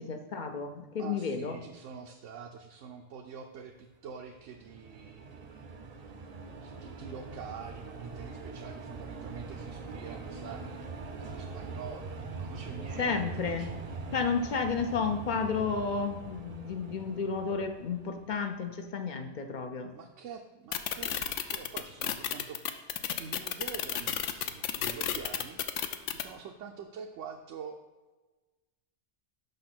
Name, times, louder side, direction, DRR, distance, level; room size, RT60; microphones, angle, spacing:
voice 1, 0.0-1.6 12.9-13.7 14.1-19.9, left 5 dB, 50° left, 7 dB, 0.6 m, -32 dB
voice 2, 1.0-5.8 6.6-14.6 19.9-22.8 23.2-27.8, right 6 dB, 80° right, 3 dB, 1.0 m, -46 dB
sound 1, 4.2-18.7, right 4 dB, 40° right, 0.6 m, -43 dB
sound 2, 20.7-26.2, left 10 dB, 80° left, 0.9 m, -31 dB
6.6 x 5.6 x 6.0 m, 1.2 s
omnidirectional pair, 1.3 m